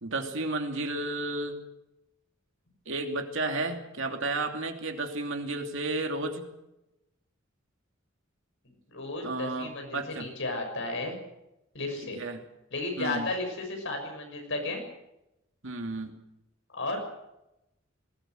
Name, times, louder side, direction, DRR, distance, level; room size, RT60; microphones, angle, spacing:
voice 1, 0.0-1.5 2.9-6.5 9.2-10.3 12.1-12.4 13.0-13.3 15.6-16.1, right 2 dB, 65° right, 4 dB, 2.8 m, -32 dB
voice 2, 8.6-11.2 11.7-12.2 12.7-14.8 16.7-17.0, left 2 dB, 65° left, 3 dB, 6.7 m, -33 dB
20.5 x 18.0 x 7.9 m, 0.89 s
head